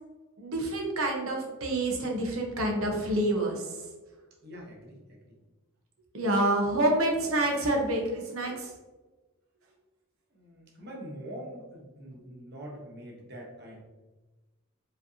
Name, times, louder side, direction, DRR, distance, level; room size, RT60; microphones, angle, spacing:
voice 1, 0.4-3.8 6.1-8.7, right 1 dB, 75° right, 1 dB, 0.9 m, -27 dB
voice 2, 4.4-5.2 10.3-13.8, equal, 50° right, -1 dB, 1.0 m, -44 dB
4.9 x 3.3 x 2.7 m, 1.2 s
head